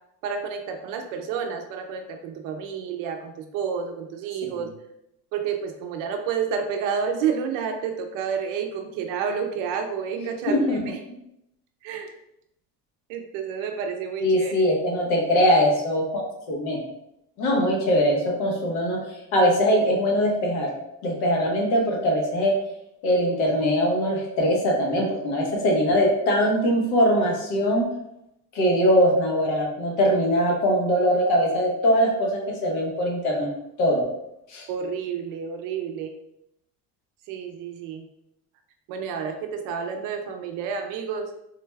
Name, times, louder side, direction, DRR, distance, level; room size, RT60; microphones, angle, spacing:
voice 1, 0.2-4.7 5.3-11.0 11.8-12.1 13.1-14.8 34.7-36.1 37.3-38.1 38.9-41.3, right 6 dB, 60° right, 5 dB, 0.6 m, -30 dB
voice 2, 10.5-10.8 14.2-16.8 17.4-19.0 19.3-20.7 21.0-22.6 23.0-27.9 28.5-33.5 33.8-34.0 34.5-34.7, equal, 75° left, -1 dB, 1.2 m, -22 dB
3.8 x 2.2 x 3.3 m, 0.80 s
cardioid pair, 180°, 37 cm